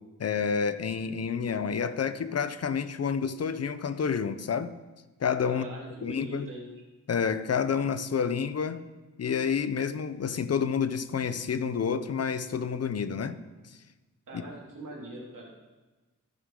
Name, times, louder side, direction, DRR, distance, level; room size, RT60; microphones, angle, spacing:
voice 1, 0.2-4.7 5.2-5.7 6.0-6.5 7.1-8.8 9.2-13.4 14.3-14.4, left 6 dB, 50° left, 12 dB, 0.6 m, -29 dB
voice 2, 5.5-6.7 14.3-15.5, right 1 dB, 90° right, -3 dB, 2.8 m, -42 dB
14.5 x 6.3 x 3.8 m, 1.2 s
wide cardioid pair, 95°, 31 cm